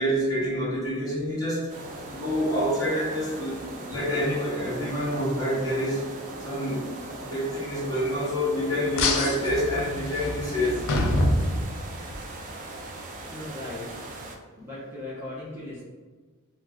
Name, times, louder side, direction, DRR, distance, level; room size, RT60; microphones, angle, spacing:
voice 1, 0.0-1.7 2.1-6.0 6.4-6.9 7.2-10.9, equal, 20° left, -8 dB, 0.8 m, -27 dB
sound 1, 1.7-14.4, right 2 dB, 40° right, 0.3 m, -39 dB
sound 2, 9.0-12.2, left 2 dB, 65° left, 0.4 m, -26 dB
voice 2, 12.8-13.9 14.4-15.8, left 2 dB, 10° right, -9 dB, 0.7 m, -39 dB
2.3 x 2.1 x 3.5 m, 1.4 s
head